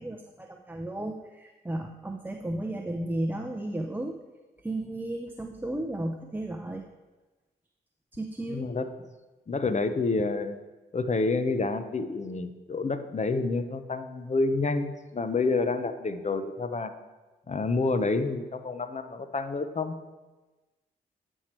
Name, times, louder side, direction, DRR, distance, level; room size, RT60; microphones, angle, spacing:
voice 1, 0.0-4.2 4.6-6.8 8.1-8.7, right 1 dB, 10° right, 2 dB, 0.7 m, -34 dB
voice 2, 8.5-8.9 9.5-10.6 10.9-16.9 17.5-19.9, left 3 dB, 35° left, 10 dB, 0.8 m, -28 dB
8.9 x 4.5 x 4.4 m, 1.2 s
supercardioid pair, 40°, 20 cm